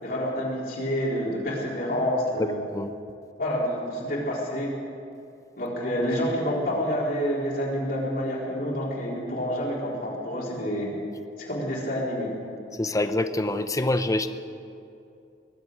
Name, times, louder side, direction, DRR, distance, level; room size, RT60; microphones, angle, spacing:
voice 1, 0.0-2.6 3.4-4.7 5.6-10.9 11.4-12.3, equal, 55° left, -5 dB, 4.1 m, -28 dB
voice 2, 2.4-2.9 12.8-14.3, left 2 dB, 20° left, 10 dB, 0.7 m, -26 dB
21.0 x 7.9 x 8.6 m, 2.5 s
head